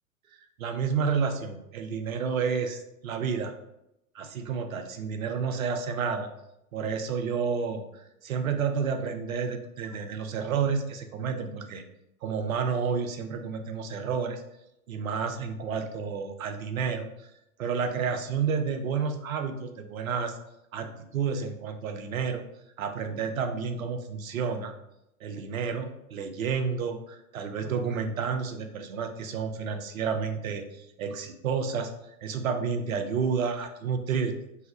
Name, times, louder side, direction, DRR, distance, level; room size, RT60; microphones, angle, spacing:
voice 1, 0.6-3.5 4.1-6.3 6.7-11.8 12.2-14.4 14.9-17.3 17.6-20.4 20.7-22.4 22.8-24.7 25.2-31.9 32.2-34.3, right 6 dB, 65° right, 6 dB, 0.7 m, -30 dB
3.1 x 2.7 x 3.8 m, 0.84 s
figure-of-eight pair, 95°, 44 cm